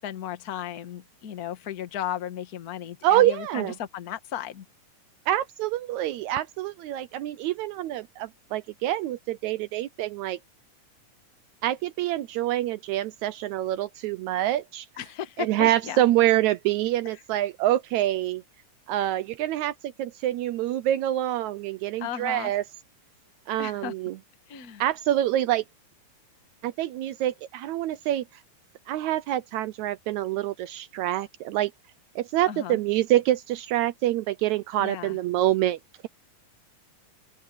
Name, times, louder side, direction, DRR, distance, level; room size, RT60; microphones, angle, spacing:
voice 1, 0.0-4.6 15.0-16.0 22.0-22.5 23.6-23.9 24.5-24.8 32.5-32.8 34.8-35.2, left 10 dB, 60° left, 0.9 m, -35 dB
voice 2, 3.0-3.8 5.3-10.4 11.6-14.9 15.4-18.4 18.9-22.6 23.5-24.2 24.8-25.6 26.6-28.2 28.9-31.7 32.2-35.8, right 14 dB, 85° right, 1.7 m, -26 dB
open air
omnidirectional pair, 3.9 m